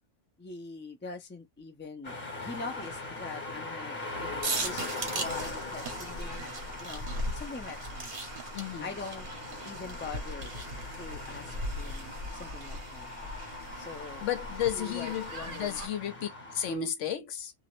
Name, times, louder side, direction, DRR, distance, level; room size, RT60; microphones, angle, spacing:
voice 1, 0.4-6.5 6.8-7.1 7.3-8.1 8.8-9.3 9.6-10.6 11.0-13.1 13.7-14.3 14.7-15.8, left 4 dB, 15° left, 0.3 m, -43 dB
sound 1, 2.0-16.8, left 2 dB, 55° left, 1.1 m, -41 dB
sound 2, 4.4-15.9, right 2 dB, 50° right, 0.9 m, -39 dB
voice 2, 8.5-8.9 14.2-17.5, left 9 dB, 90° left, 1.0 m, -33 dB
2.5 x 2.0 x 3.0 m
omnidirectional pair, 1.2 m